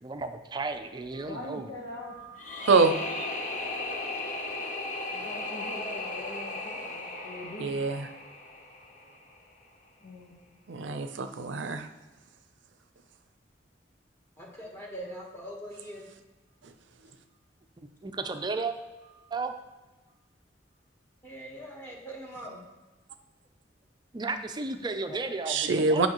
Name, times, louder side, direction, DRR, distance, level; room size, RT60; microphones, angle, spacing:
voice 1, 0.0-1.7 4.1-4.2 17.8-18.8 19.3-19.5 24.1-26.1, right 3 dB, 25° right, 8 dB, 0.4 m, -34 dB
voice 2, 1.1-3.2 3.6-8.4 8.8-9.2 10.0-10.4 18.1-18.4 19.2-19.3 21.6-21.7, left 1 dB, 80° left, -5 dB, 1.2 m, -45 dB
sound 1, 2.4-9.3, left 2 dB, 45° left, 0.8 m, -36 dB
voice 3, 7.6-8.1 10.7-11.9 25.5-26.1, right 4 dB, 90° right, 9 dB, 0.5 m, -25 dB
voice 4, 14.4-16.0 21.2-22.6 25.1-25.2, equal, 15° left, -2 dB, 1.2 m, -42 dB
8.8 x 5.5 x 3.0 m, 1.2 s
head